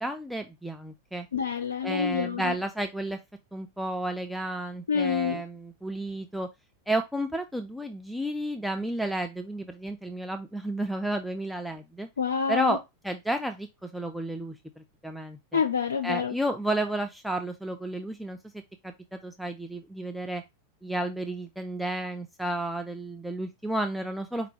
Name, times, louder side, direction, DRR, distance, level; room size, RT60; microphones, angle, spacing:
voice 1, 0.0-1.3 1.8-3.2 3.5-6.5 6.9-12.1 12.5-12.8 13.0-15.6 16.0-18.4 18.8-20.4 20.8-24.5, right 1 dB, ahead, 0.4 m, -32 dB
voice 2, 1.3-2.6 4.9-5.4 12.2-12.8 15.5-16.3, left 6 dB, 75° left, 0.4 m, -27 dB
4.8 x 2.2 x 4.8 m
figure-of-eight pair, 90°, 0 cm